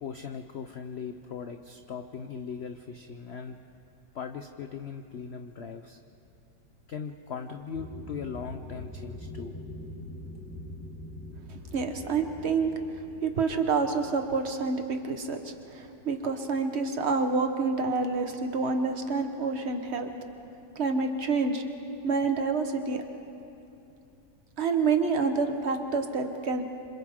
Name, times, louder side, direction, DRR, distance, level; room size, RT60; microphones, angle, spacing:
voice 1, 0.0-3.6 4.1-6.0 6.9-9.5, left 6 dB, 65° left, 7 dB, 0.6 m, -39 dB
sound 1, 7.7-15.6, left 1 dB, 15° left, 3.5 m, -44 dB
voice 2, 11.7-12.7 13.2-20.1 20.7-21.6 22.0-23.0 24.6-26.6, right 4 dB, 40° right, 5 dB, 1.4 m, -28 dB
27.0 x 26.5 x 3.7 m, 2.7 s
omnidirectional pair, 1.9 m